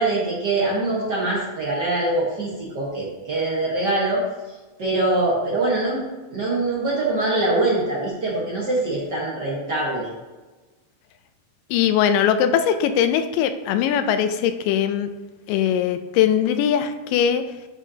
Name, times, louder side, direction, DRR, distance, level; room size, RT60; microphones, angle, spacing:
voice 1, 0.0-4.2 4.8-6.0 6.3-10.1, right 2 dB, 65° right, -6 dB, 1.0 m, -23 dB
voice 2, 11.7-15.1 15.5-17.4, left 9 dB, 80° left, 9 dB, 2.1 m, -20 dB
12.5 x 5.4 x 2.8 m, 1.2 s
omnidirectional pair, 4.1 m